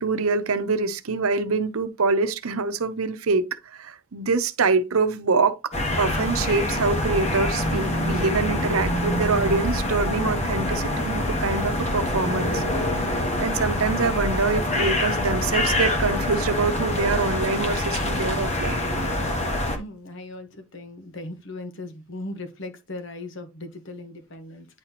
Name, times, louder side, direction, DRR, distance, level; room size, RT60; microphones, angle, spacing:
voice 1, 0.0-5.7 6.0-18.8, right 4 dB, 90° right, 0.8 m, -25 dB
sound 1, 5.7-19.8, left 1 dB, 30° left, 1.3 m, -25 dB
sound 2, 7.2-17.7, right 2 dB, 50° right, 0.9 m, -42 dB
voice 2, 19.8-24.7, left 2 dB, 60° left, 1.2 m, -38 dB
9.7 x 4.1 x 2.9 m
head